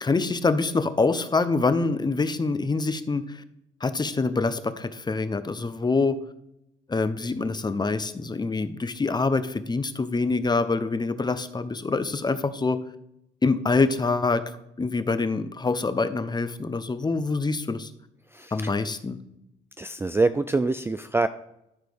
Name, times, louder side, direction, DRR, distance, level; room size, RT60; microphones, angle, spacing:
voice 1, 0.0-3.4 3.8-6.2 6.9-12.8 13.4-14.4 14.8-17.9 18.5-19.2, left 3 dB, 20° left, 12 dB, 0.6 m, -25 dB
voice 2, 18.3-18.7 19.8-21.3, right 3 dB, 10° right, 11 dB, 0.3 m, -25 dB
13.0 x 4.8 x 3.5 m, 0.82 s
cardioid pair, 90°, 20 cm